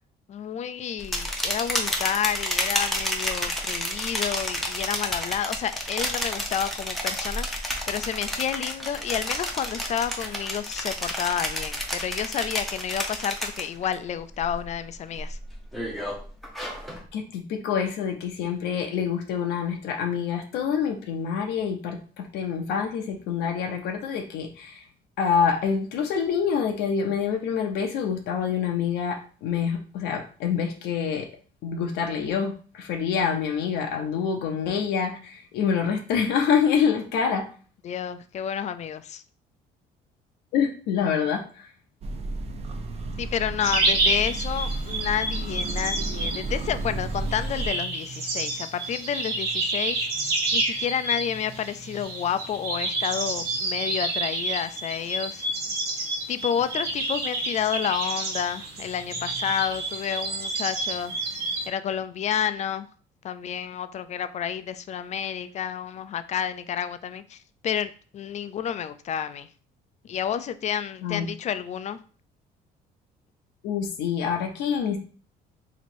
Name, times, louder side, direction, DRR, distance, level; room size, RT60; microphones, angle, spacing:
voice 1, 0.3-7.5 7.9-15.4 37.8-39.2 43.2-50.1 50.5-55.5 56.3-61.1 61.7-62.9 63.2-69.5 70.0-72.0, left 8 dB, 45° left, 0.4 m, -30 dB
sound 1, 1.0-13.9 14.3-14.7 15.1-17.0, equal, ahead, 0.8 m, -30 dB
voice 2, 17.1-24.8 25.2-31.3 31.6-37.5 40.5-41.7 71.0-71.3 73.6-75.0, left 7 dB, 85° left, 0.6 m, -26 dB
sound 2, 42.0-47.7, right 2 dB, 40° right, 0.6 m, -32 dB
sound 3, 43.6-61.7, right 2 dB, 75° right, 1.3 m, -29 dB
3.0 x 2.8 x 4.3 m
cardioid pair, 110°, 17 cm